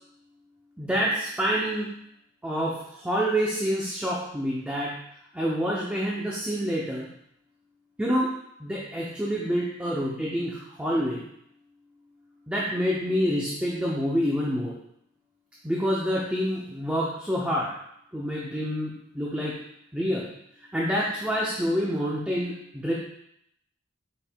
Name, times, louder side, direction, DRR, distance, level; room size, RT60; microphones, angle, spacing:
voice 1, 0.8-1.9 2.4-5.0 5.3-7.1 8.0-8.3 8.6-11.2 12.5-14.8 15.6-17.7 18.1-19.6 19.9-20.3 20.6-22.9, equal, 5° right, -5 dB, 0.5 m, -27 dB
5.3 x 4.4 x 2.2 m, 0.75 s
head